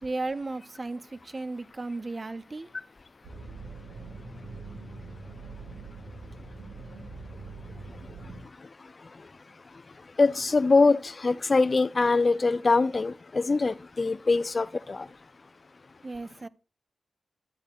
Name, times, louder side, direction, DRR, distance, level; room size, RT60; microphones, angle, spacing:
voice 1, 0.0-2.7 16.0-16.5, right 3 dB, 40° right, 0.5 m, -35 dB
sound 1, 3.2-8.4, right 3 dB, 85° right, 3.6 m, -43 dB
voice 2, 10.2-15.1, left 3 dB, 50° left, 0.4 m, -23 dB
12.0 x 10.5 x 2.3 m
cardioid pair, 45°, 0 cm